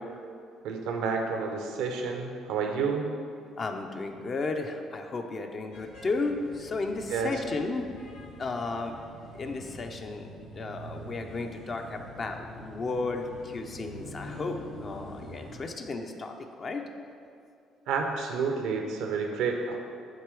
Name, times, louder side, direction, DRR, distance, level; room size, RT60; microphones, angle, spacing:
voice 1, 0.6-3.1 7.1-7.3 17.9-19.8, right 5 dB, 70° right, 3 dB, 0.7 m, -30 dB
voice 2, 3.6-7.9 8.4-9.0 9.3-16.8, left 3 dB, 45° left, 4 dB, 0.6 m, -34 dB
sound 1, 5.7-15.6, left 1 dB, 90° left, 1.4 m, -45 dB
7.8 x 3.0 x 4.7 m, 2.3 s
hypercardioid pair, 55°, 0 cm